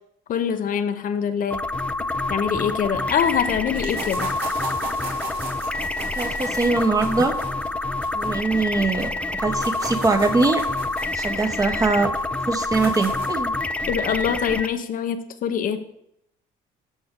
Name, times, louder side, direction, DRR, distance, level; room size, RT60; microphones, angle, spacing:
voice 1, 0.3-1.6 2.3-4.3 13.9-15.8, left 8 dB, 55° left, 9 dB, 0.7 m, -24 dB
sound 1, 1.5-14.7, left 2 dB, 5° left, 0.5 m, -27 dB
sound 2, 3.8-9.1 9.4-13.4, right 3 dB, 75° right, 2.7 m, -37 dB
voice 2, 6.2-7.3 8.1-10.6 11.1-12.1 12.5-13.5, right 3 dB, 20° right, 7 dB, 1.0 m, -22 dB
12.5 x 5.2 x 3.7 m, 0.75 s
cardioid pair, 110°, 17 cm